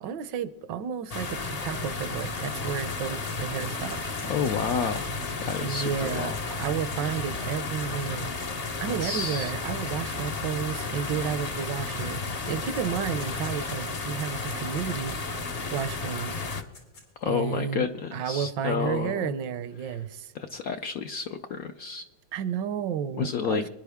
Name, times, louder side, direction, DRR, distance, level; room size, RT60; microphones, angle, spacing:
voice 1, 0.0-4.0 5.6-8.4 8.8-12.2 12.5-15.2 15.7-16.4 17.3-20.3 22.3-23.7, right 7 dB, 70° right, 14 dB, 1.3 m, -32 dB
sound 1, 1.1-16.6, left 3 dB, 50° left, 0.4 m, -33 dB
sound 2, 2.6-9.3 10.1-10.2 11.3-12.3 12.6-15.9 16.3-17.2, left 3 dB, 90° left, 3.8 m, -50 dB
voice 2, 4.3-5.1 5.4-6.4 9.0-9.5 17.2-19.3 19.8-20.0 20.3-22.1 23.2-23.7, left 6 dB, 70° left, 7 dB, 0.8 m, -30 dB
24.0 x 10.5 x 3.5 m, 1.1 s
omnidirectional pair, 2.1 m